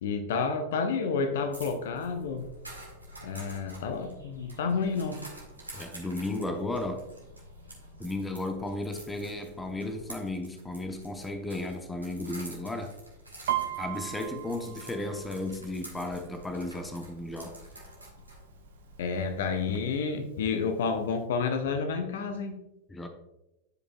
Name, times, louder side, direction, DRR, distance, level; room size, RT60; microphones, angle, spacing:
voice 1, 0.0-2.5 3.2-5.3 19.0-22.6, left 5 dB, 55° left, 7 dB, 0.8 m, -30 dB
sound 1, 1.5-19.7, right 1 dB, 85° right, 1.7 m, -48 dB
voice 2, 5.7-7.0 8.0-12.9 13.8-17.5 22.9-23.1, left 2 dB, 10° left, 5 dB, 0.8 m, -34 dB
Piano, 13.5-17.1 17.5-17.9 18.2-18.9 19.4-19.5 19.8-20.8 21.2-21.3, right 13 dB, 60° right, 0.5 m, -36 dB
10.5 x 5.1 x 2.3 m, 0.93 s
figure-of-eight pair, 90°, 0 cm